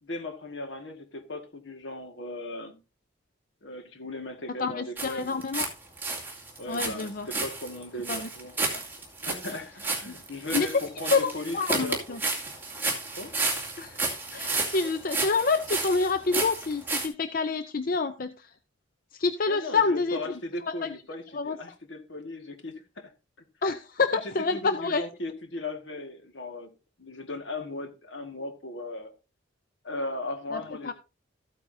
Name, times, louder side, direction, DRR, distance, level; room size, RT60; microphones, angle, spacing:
voice 1, 0.0-2.8 3.6-5.4 6.6-8.6 9.2-12.2 13.2-13.3 19.5-23.1 24.1-26.7 27.0-29.1 29.8-30.9, left 2 dB, 75° left, 1.8 m, -37 dB
voice 2, 4.6-5.7 6.7-7.3 8.1-8.3 10.1-10.2 10.5-10.7 11.1-12.2 13.8-14.0 14.3-18.3 19.2-20.2 20.8-20.9 21.3-21.6 23.6-25.0 30.5-30.9, left 4 dB, 50° left, 0.6 m, -27 dB
sound 1, 5.0-5.7 6.0-17.1, right 3 dB, 10° right, 2.4 m, -31 dB
14.0 x 8.8 x 2.7 m
head